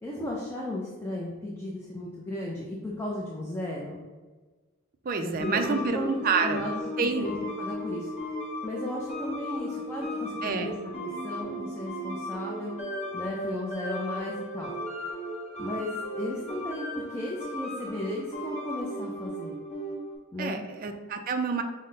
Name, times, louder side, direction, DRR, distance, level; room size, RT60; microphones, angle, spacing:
voice 1, 0.0-4.0 5.2-6.1 6.4-8.1 8.6-10.7 11.0-14.7 15.6-19.6 20.3-20.6, left 1 dB, 10° left, -3 dB, 0.5 m, -35 dB
voice 2, 5.0-6.6 7.0-7.3 10.4-10.7 20.4-21.6, right 5 dB, 45° right, 6 dB, 0.3 m, -28 dB
sound 1, 5.4-20.2, left 1 dB, 30° left, 1.0 m, -35 dB
5.6 x 2.1 x 3.9 m, 1.3 s
head